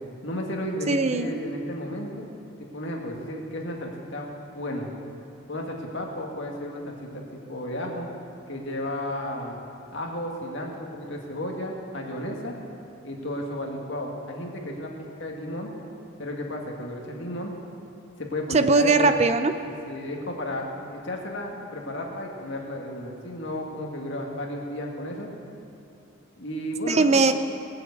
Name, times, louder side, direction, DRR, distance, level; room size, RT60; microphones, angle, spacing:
voice 1, 0.2-2.3 2.6-4.9 5.5-8.1 8.5-9.6 9.9-12.6 13.0-15.7 16.2-17.5 18.2-19.2 19.6-25.3 26.4-27.2, left 1 dB, 55° left, 0 dB, 2.1 m, -33 dB
voice 2, 0.9-1.4 18.5-19.5 26.9-27.3, right 3 dB, 30° right, 10 dB, 0.4 m, -20 dB
19.5 x 7.7 x 8.2 m, 2.7 s
head